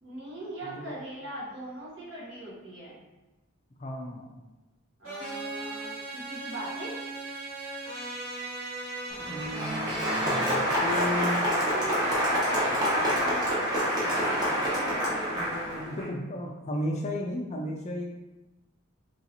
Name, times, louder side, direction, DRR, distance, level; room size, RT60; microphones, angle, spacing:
voice 1, 0.0-3.0 5.0-7.1 10.7-13.5, right 1 dB, 55° right, -5 dB, 0.9 m, -41 dB
voice 2, 0.6-0.9 3.8-4.4 9.3-11.4 15.4-18.0, left 1 dB, 30° left, 1 dB, 0.3 m, -34 dB
sound 1, 5.0-10.5, right 2 dB, 75° right, 1.3 m, -37 dB
Applause, 9.1-16.0, equal, 20° right, 0.6 m, -27 dB
3.0 x 2.6 x 2.8 m, 1.1 s
head